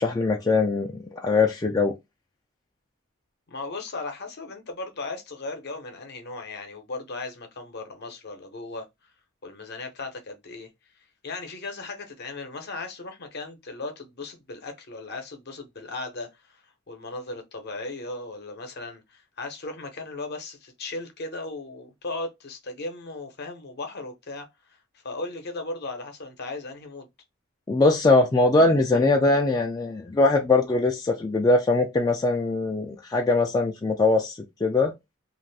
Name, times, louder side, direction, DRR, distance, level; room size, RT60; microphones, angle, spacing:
voice 1, 0.0-1.9 27.7-34.9, left 3 dB, 20° left, 0.3 m, -21 dB
voice 2, 3.5-8.9 9.4-10.7 11.2-24.8 25.0-27.1, left 3 dB, 50° left, 0.7 m, -37 dB
2.5 x 2.4 x 3.2 m
head